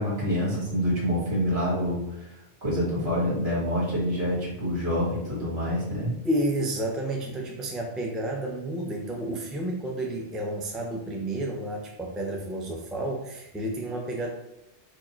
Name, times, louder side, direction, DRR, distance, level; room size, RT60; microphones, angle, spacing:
voice 1, 0.0-2.3 2.6-6.2, equal, 60° right, -5 dB, 2.1 m, -27 dB
voice 2, 6.2-14.3, right 1 dB, ahead, 0 dB, 0.5 m, -31 dB
4.7 x 2.6 x 4.4 m, 0.88 s
omnidirectional pair, 1.2 m